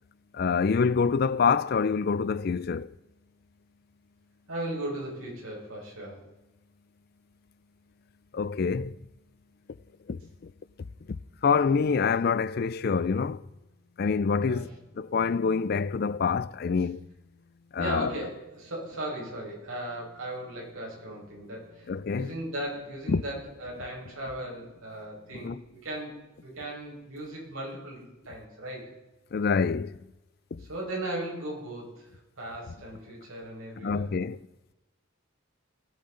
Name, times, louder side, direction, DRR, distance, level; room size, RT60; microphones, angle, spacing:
voice 1, 0.3-2.9 8.3-9.0 10.1-10.5 11.4-13.5 14.0-14.7 15.0-17.0 17.7-18.1 21.9-22.3 23.1-23.2 25.4-25.6 29.3-30.0 30.5-30.6 33.8-34.4, left 5 dB, 50° left, 0.4 m, -26 dB
voice 2, 4.5-6.3 14.4-14.8 17.7-29.0 30.6-34.1, right 1 dB, 85° right, 5.1 m, -37 dB
19.0 x 8.0 x 3.8 m
head